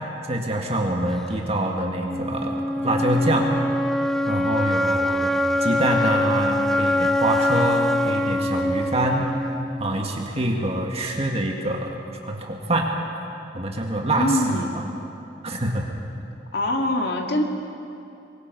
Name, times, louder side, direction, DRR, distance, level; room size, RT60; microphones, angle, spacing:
voice 1, 0.3-3.5 4.3-9.3 9.8-12.0 12.2-12.9 13.5-14.8 15.4-15.9, right 1 dB, 35° right, 1 dB, 1.9 m, -25 dB
sound 1, 2.1-10.0, left 1 dB, ahead, 0.5 m, -24 dB
voice 2, 14.1-14.9 16.5-17.4, left 1 dB, 65° left, 2 dB, 2.1 m, -24 dB
24.0 x 21.0 x 5.4 m, 2.8 s
head